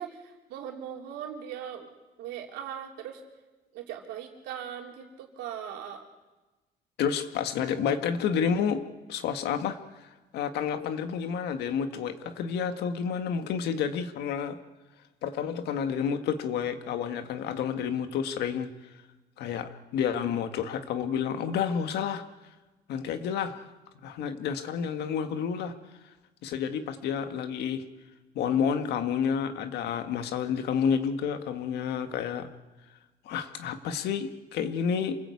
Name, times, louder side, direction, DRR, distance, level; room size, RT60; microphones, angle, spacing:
voice 1, 0.0-1.9 2.2-3.2 3.7-6.0, right 9 dB, 90° right, 2 dB, 3.4 m, -39 dB
voice 2, 7.0-8.8 9.1-14.6 15.2-18.7 19.4-22.2 22.9-23.7 24.0-25.7 26.4-27.8 28.4-32.5 33.3-35.2, left 7 dB, 75° left, 8 dB, 1.9 m, -30 dB
27.5 x 20.0 x 8.5 m, 1.2 s
cardioid pair, 110°, 17 cm